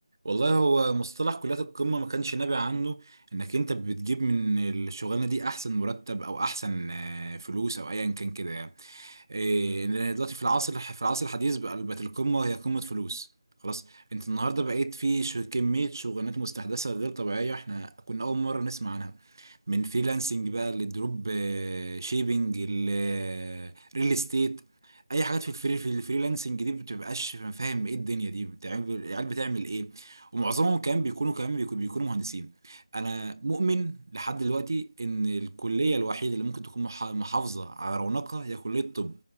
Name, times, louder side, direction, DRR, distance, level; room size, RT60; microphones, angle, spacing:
voice 1, 0.2-13.3 13.6-39.2, right 3 dB, 35° right, 0.5 m, -30 dB
14.5 x 5.2 x 2.6 m
figure-of-eight pair, 180°, 3 cm